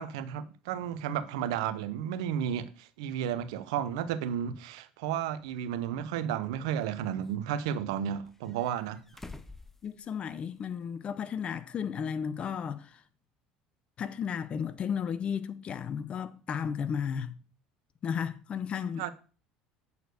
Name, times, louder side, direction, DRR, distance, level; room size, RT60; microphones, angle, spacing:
voice 1, 0.0-9.0 19.0-19.1, right 9 dB, 80° right, 0.7 m, -33 dB
sound 1, 5.5-5.6 6.4-7.3 8.2-10.6 10.9-11.0 12.6-12.7, left 3 dB, 10° left, 0.7 m, -50 dB
voice 2, 9.8-13.0 14.0-17.3 18.0-19.1, left 7 dB, 40° left, 0.8 m, -34 dB
8.3 x 4.5 x 6.4 m
supercardioid pair, 85°, 3 cm